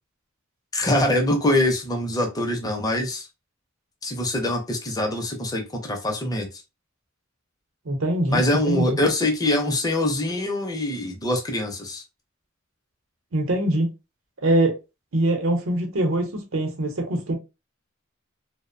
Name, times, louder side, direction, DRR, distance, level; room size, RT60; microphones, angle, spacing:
voice 1, 0.7-3.3 4.0-6.5 8.3-12.0, left 1 dB, 20° left, 0.5 m, -24 dB
voice 2, 7.8-9.0 13.3-13.9 14.4-14.7 15.1-17.3, right 1 dB, 85° right, 0.7 m, -23 dB
2.5 x 2.0 x 2.5 m
head